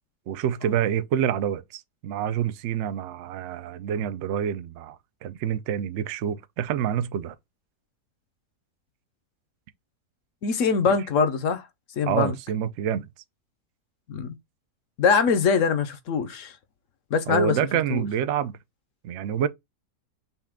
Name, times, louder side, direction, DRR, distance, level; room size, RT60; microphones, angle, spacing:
voice 1, 0.3-7.4 12.1-13.1 17.3-18.6 19.0-19.5, right 9 dB, 70° right, 0.7 m, -27 dB
voice 2, 10.4-11.7 12.0-12.4 14.1-14.4 15.0-16.5 17.1-17.6 17.9-18.0, left 5 dB, 60° left, 1.0 m, -23 dB
5.7 x 2.3 x 3.5 m
omnidirectional pair, 1.7 m